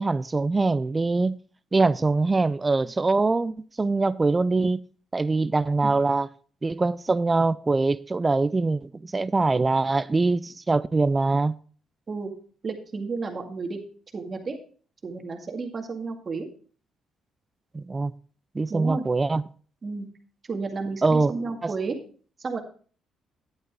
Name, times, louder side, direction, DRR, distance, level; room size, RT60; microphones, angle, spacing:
voice 1, 0.0-1.4 1.7-4.8 5.1-6.3 6.6-11.6 17.7-18.1 18.5-19.4 21.0-21.3 21.6-21.7, right 3 dB, 25° right, 0.4 m, -23 dB
voice 2, 12.6-13.8 14.1-14.6 15.0-16.5 18.7-19.1 19.8-20.1 20.5-22.0 22.4-22.6, right 4 dB, 40° right, 2.0 m, -32 dB
10.5 x 9.0 x 3.6 m
cardioid pair, 90°, 0 cm